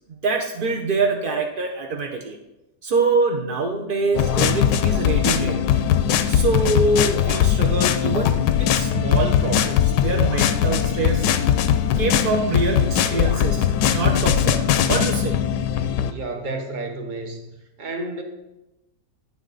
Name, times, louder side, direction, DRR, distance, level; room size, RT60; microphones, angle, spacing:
voice 1, 0.2-2.4 2.8-5.7 6.3-11.4 11.9-15.4, right 3 dB, 60° right, 2 dB, 0.5 m, -24 dB
sound 1, 4.1-16.1, left 9 dB, 85° left, 1.2 m, -20 dB
voice 2, 16.1-17.5 17.8-18.2, right 2 dB, 35° right, 4 dB, 0.8 m, -31 dB
9.3 x 7.3 x 3.9 m, 0.96 s
omnidirectional pair, 1.8 m